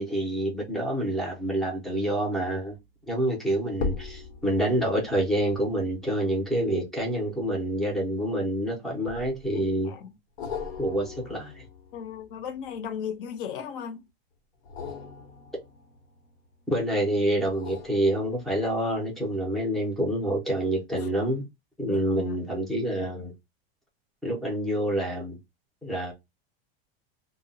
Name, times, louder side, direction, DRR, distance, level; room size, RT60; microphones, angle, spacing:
voice 1, 0.0-2.8 3.1-9.9 10.8-11.7 16.7-21.4 21.8-23.3 24.2-25.4 25.8-26.1, right 1 dB, ahead, 0.4 m, -27 dB
sound 1, 2.6-2.9 3.7-8.4 9.1-9.7 10.4-13.4 14.6-16.7 17.4-18.8 19.3-19.4, left 5 dB, 90° left, 0.8 m, -40 dB
voice 2, 11.9-14.1 21.0-21.1 21.9-22.4, left 7 dB, 60° left, 0.6 m, -36 dB
2.1 x 2.0 x 3.7 m
supercardioid pair, 165°, 30 cm